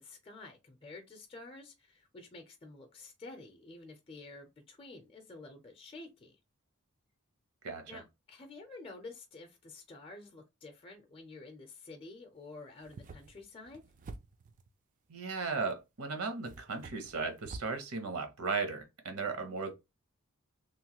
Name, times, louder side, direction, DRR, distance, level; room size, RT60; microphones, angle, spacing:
voice 1, 0.0-6.3 7.9-13.8, left 3 dB, 25° left, 0.5 m, -50 dB
voice 2, 7.6-8.0 15.1-19.7, right 4 dB, 75° right, 0.8 m, -36 dB
sound 1, 12.7-14.7 15.7-15.8 16.5-17.8, right 3 dB, 35° right, 0.3 m, -49 dB
3.0 x 2.1 x 2.9 m
head